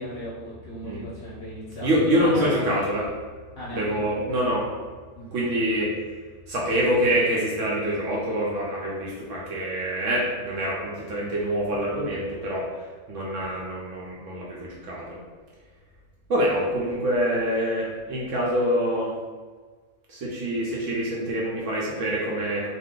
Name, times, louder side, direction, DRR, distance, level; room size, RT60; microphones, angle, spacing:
voice 1, 0.0-2.6 3.6-4.2 5.1-5.4 21.2-21.3, equal, 50° left, -7 dB, 0.8 m, -36 dB
voice 2, 1.8-3.1 3.7-4.7 5.3-5.9 6.5-12.7 13.1-15.2 16.3-19.1 20.1-22.7, equal, 65° right, -4 dB, 0.8 m, -25 dB
2.7 x 2.2 x 3.6 m, 1.5 s
omnidirectional pair, 1.6 m